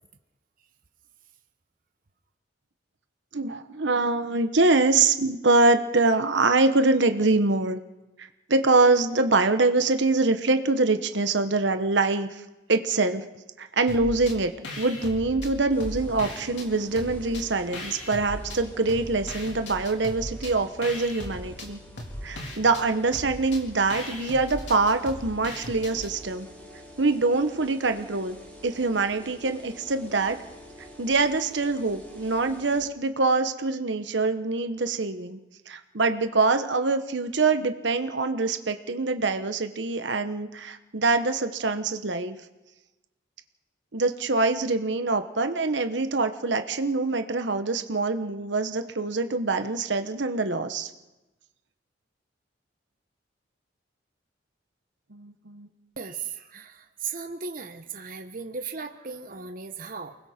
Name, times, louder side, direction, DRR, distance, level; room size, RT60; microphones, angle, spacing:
voice 1, 3.3-7.8 8.2-12.4 12.7-13.2 13.6-14.5 14.8-21.8 22.2-26.5 27.0-28.4 28.6-30.4 31.0-35.4 35.7-42.4 43.9-50.9 55.1-55.7, right 3 dB, 70° right, 8 dB, 1.1 m, -24 dB
sound 1, 13.9-14.4 14.6-16.7 17.0-18.6 18.9-26.1, left 1 dB, 70° left, 3.7 m, -38 dB
sound 2, 15.7-32.8, equal, 10° left, 5.8 m, -48 dB
voice 2, 56.0-60.2, right 5 dB, 45° right, 5 dB, 1.0 m, -36 dB
29.0 x 20.0 x 4.4 m, 1.0 s
head